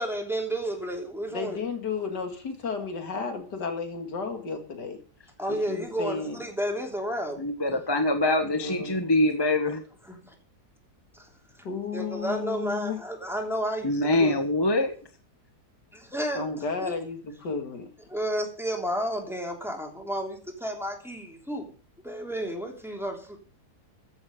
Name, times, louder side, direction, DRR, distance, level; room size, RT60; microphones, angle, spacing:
voice 1, 0.0-1.6 2.8-2.9 5.4-7.4 9.7-9.8 10.1-10.3 11.1-11.3 11.9-13.9 14.2-14.4 15.9-16.4 16.8-16.9 18.1-21.7 22.0-23.4, equal, ahead, 3.1 m, -31 dB
voice 2, 1.3-5.0 5.5-6.4 8.6-9.1 11.6-13.0 16.3-17.9, left 4 dB, 85° left, 2.9 m, -33 dB
voice 3, 7.4-9.8 13.8-14.9, left 1 dB, 15° left, 1.3 m, -24 dB
14.0 x 7.6 x 6.6 m
omnidirectional pair, 1.8 m